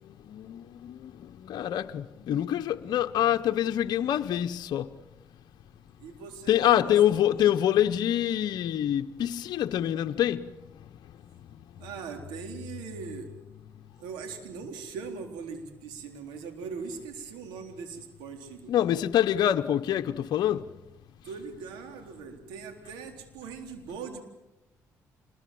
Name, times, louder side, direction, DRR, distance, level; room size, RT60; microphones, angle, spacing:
voice 1, 0.3-1.1 1.4-4.9 6.5-10.4 18.7-20.6, left 11 dB, 70° left, 0.9 m, -25 dB
voice 2, 6.0-7.3 11.8-13.3 13.9-18.7 21.2-24.2, right 5 dB, 85° right, 3.7 m, -40 dB
26.5 x 21.5 x 7.7 m
supercardioid pair, 60°, 7 cm